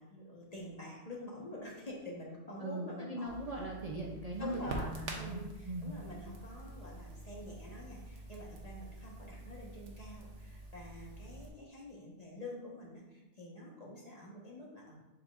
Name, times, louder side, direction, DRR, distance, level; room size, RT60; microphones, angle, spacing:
voice 1, 0.0-3.4 4.4-4.9 5.2-15.0, left 1 dB, 35° left, -3 dB, 1.4 m, -47 dB
voice 2, 2.6-5.9, right 1 dB, 40° right, -3 dB, 0.7 m, -40 dB
Crackle, 3.3-11.5, right 1 dB, 80° right, 1.3 m, -47 dB
7.4 x 5.9 x 2.6 m, 1.0 s
omnidirectional pair, 1.2 m